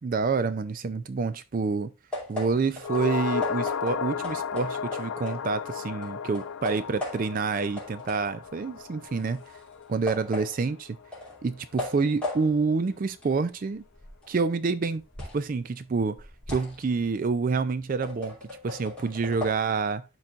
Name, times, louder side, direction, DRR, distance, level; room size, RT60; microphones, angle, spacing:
voice 1, 0.0-1.9 2.3-9.4 9.9-11.0 11.4-13.8 14.3-15.0 15.3-18.3 18.6-20.0, right 4 dB, 40° right, 0.3 m, -28 dB
sound 1, 2.1-5.7 6.0-7.5 7.8-15.5 15.9-19.5, left 2 dB, 5° left, 2.7 m, -38 dB
sound 2, 2.8-11.3 11.6-11.7, left 7 dB, 80° left, 0.4 m, -34 dB
11.5 x 4.0 x 2.4 m
head